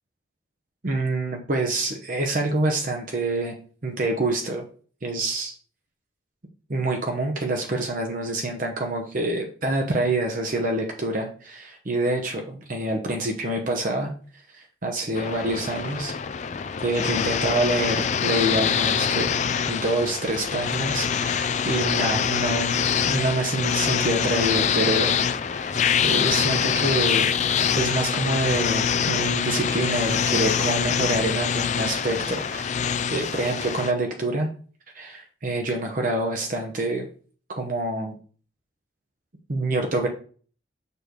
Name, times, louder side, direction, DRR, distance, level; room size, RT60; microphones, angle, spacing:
voice 1, 0.8-3.5 3.8-4.7 5.0-5.5 6.7-14.1 14.5-16.1 16.8-19.3 19.7-25.2 25.5-27.3 27.7-32.7 33.1-34.5 34.9-37.1 37.5-38.2 39.5-40.1, right 2 dB, 45° right, 2 dB, 0.9 m, -26 dB
sound 1, 15.2-33.9, left 7 dB, 35° left, 0.4 m, -24 dB
6.8 x 3.2 x 5.1 m, 0.42 s
head